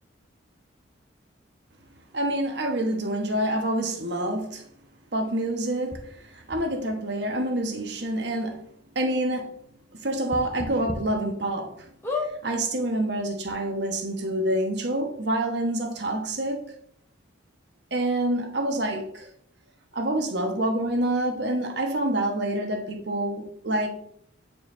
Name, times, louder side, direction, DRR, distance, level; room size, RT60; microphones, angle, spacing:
voice 1, 2.1-4.6 5.1-8.7 8.9-9.6 9.9-11.9 12.2-16.7 17.9-19.3 19.9-23.9, right 1 dB, 55° right, 1.1 m, -27 dB
sound 1, 5.9-6.0 6.5-6.6 7.6-7.7 8.0-8.1 8.5-8.6 10.3-11.0 11.5-11.6 12.0-12.3 13.2-13.3 13.4-13.5, left 3 dB, 10° left, 0.9 m, -31 dB
8.7 x 4.6 x 3.2 m
head